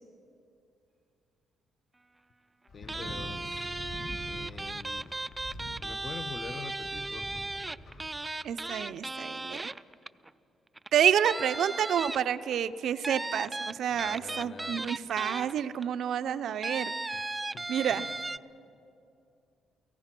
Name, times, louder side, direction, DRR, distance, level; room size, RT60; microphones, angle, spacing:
sound 1, 2.7-8.1, left 1 dB, 75° left, 6.7 m, -44 dB
voice 1, 2.7-3.9 4.3-5.1 5.8-7.4 13.9-14.9 17.1-18.1, left 5 dB, 40° left, 11 dB, 1.0 m, -45 dB
sound 2, 2.9-10.3 10.8-10.9 11.2-12.5 13.0-15.8 16.6-18.4, right 2 dB, 15° right, 0.5 m, -36 dB
voice 2, 8.4-9.7 10.9-17.2 17.7-18.1, right 9 dB, 70° right, 12 dB, 0.7 m, -29 dB
29.5 x 17.5 x 6.1 m, 2.6 s
cardioid pair, 90°, 0 cm